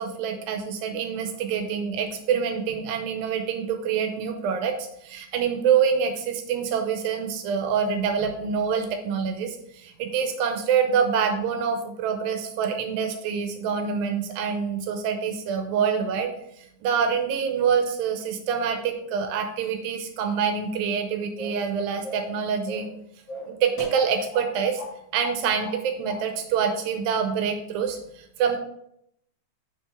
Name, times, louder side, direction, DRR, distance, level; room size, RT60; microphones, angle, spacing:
voice 1, 0.0-16.3 16.8-22.9 23.5-24.8 25.1-28.6, right 7 dB, 85° right, 6 dB, 2.5 m, -26 dB
sound 1, 21.4-21.7 22.0-22.3 22.7-23.0 23.3-24.5 24.8-24.9 25.2-25.8 26.0-26.2, left 1 dB, 45° left, 3.9 m, -37 dB
7.4 x 6.0 x 3.6 m, 0.75 s
omnidirectional pair, 4.0 m